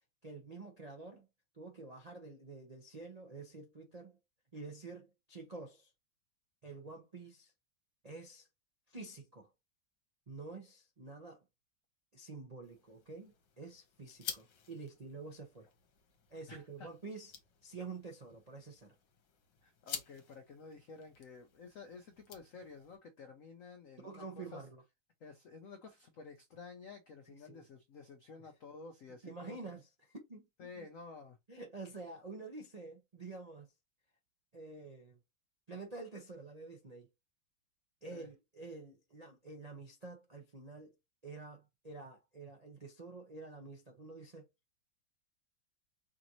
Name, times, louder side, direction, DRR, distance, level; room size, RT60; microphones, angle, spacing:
voice 1, 0.2-1.3 1.5-4.2 4.5-5.9 6.6-7.5 8.0-8.5 8.9-9.5 10.3-11.4 12.1-15.7 16.3-17.3 17.6-18.9 24.0-24.8 27.5-27.6 29.2-30.4 30.7-30.9 31.5-33.7 34.5-35.2 35.7-37.1 38.0-40.9 41.2-44.5, right 3 dB, 90° right, 0.3 m, -48 dB
sound 1, 12.6-23.0, left 7 dB, 65° left, 1.5 m, -51 dB
voice 2, 16.5-16.9 19.6-24.6 25.2-29.6 30.6-31.4 38.1-38.3, left 4 dB, 85° left, 0.7 m, -52 dB
5.0 x 2.6 x 2.9 m
omnidirectional pair, 2.2 m